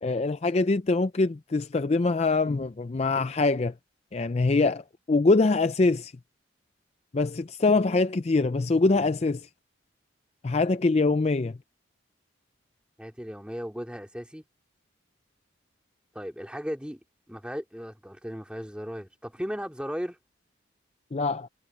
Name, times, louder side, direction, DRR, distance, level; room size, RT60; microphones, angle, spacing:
voice 1, 0.0-3.7 4.1-4.8 5.1-6.1 7.1-9.5 10.4-11.6 21.1-21.5, left 3 dB, 30° left, 0.4 m, -24 dB
voice 2, 13.0-14.4 16.1-17.0 17.3-20.2, equal, 5° right, 2.8 m, -36 dB
head